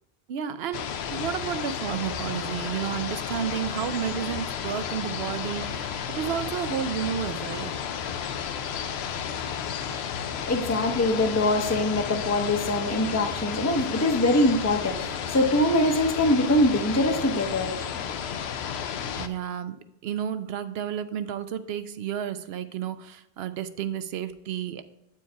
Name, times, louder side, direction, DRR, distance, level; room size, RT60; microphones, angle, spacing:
voice 1, 0.3-7.7 19.1-24.8, right 9 dB, 75° right, 0.8 m, -31 dB
sound 1, 0.7-19.3, left 8 dB, 85° left, 0.8 m, -32 dB
voice 2, 10.2-18.2, left 1 dB, 20° left, 0.7 m, -24 dB
8.4 x 4.6 x 4.5 m
omnidirectional pair, 1.1 m